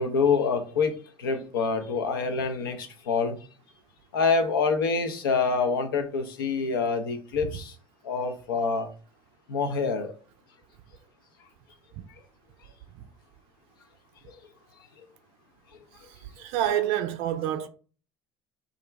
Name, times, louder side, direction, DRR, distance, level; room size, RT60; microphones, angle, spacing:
voice 1, 0.0-3.3 4.1-7.7 8.0-8.9 9.5-10.1 14.3-14.4, left 4 dB, 75° left, 0.5 m, -26 dB
voice 2, 16.0-17.7, right 11 dB, 55° right, 0.4 m, -28 dB
2.4 x 2.1 x 3.2 m
figure-of-eight pair, 65°, 12 cm